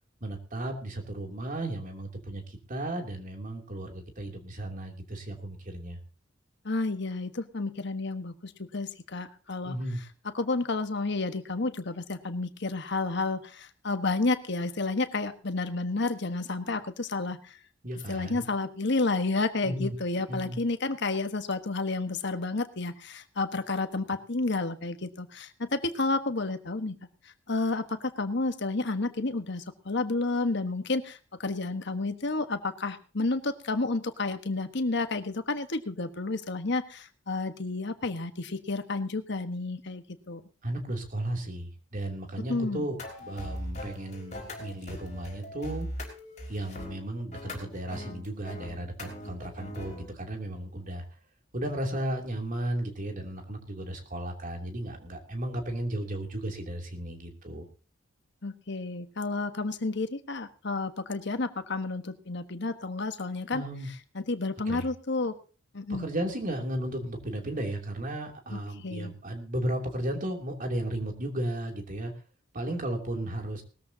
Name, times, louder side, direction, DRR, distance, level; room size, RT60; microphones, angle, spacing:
voice 1, 0.2-6.0 9.6-10.0 17.8-18.5 19.6-20.0 20.3-20.6 40.6-45.9 46.5-51.0 51.5-57.7 63.5-63.9 64.7-64.9 65.9-72.1 72.5-73.6, right 1 dB, 45° right, 3 dB, 2.9 m, -34 dB
voice 2, 6.6-9.8 10.3-17.6 18.1-27.0 27.5-40.4 42.5-42.9 58.4-63.6 64.1-65.4 65.7-66.1 68.5-69.1, left 3 dB, 60° left, 9 dB, 1.3 m, -31 dB
sound 1, 43.0-50.1, left 1 dB, 40° left, 5.0 m, -40 dB
20.0 x 13.5 x 2.8 m, 0.35 s
head